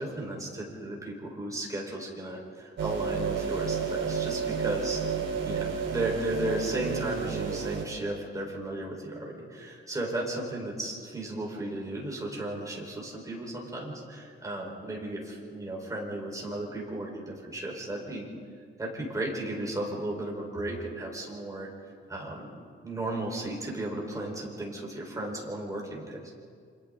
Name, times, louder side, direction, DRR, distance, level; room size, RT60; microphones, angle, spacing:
voice 1, 0.0-5.0 5.4-18.3 18.8-21.7 22.1-22.5 22.8-26.2, right 1 dB, 15° right, -1 dB, 4.6 m, -35 dB
sound 1, 2.8-7.9, right 6 dB, 65° right, 3.0 m, -31 dB
29.0 x 25.5 x 3.9 m, 2.1 s
wide cardioid pair, 155°, 21 cm